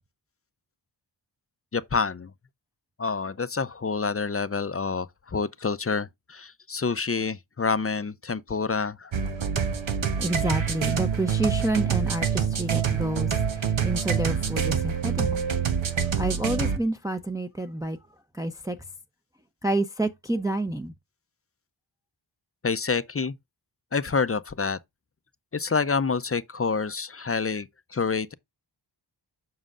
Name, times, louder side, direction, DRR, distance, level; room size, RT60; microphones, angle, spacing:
voice 1, 1.7-2.3 3.0-9.1 22.6-23.4 23.9-24.8 25.5-27.7 27.9-28.3, left 4 dB, 30° left, 0.5 m, -27 dB
sound 1, 9.1-16.8, right 7 dB, 90° right, 1.2 m, -26 dB
voice 2, 10.2-15.4 15.9-18.0 18.3-18.8 19.6-20.9, right 2 dB, 10° right, 0.6 m, -29 dB
7.5 x 6.2 x 2.5 m
wide cardioid pair, 70°, 45 cm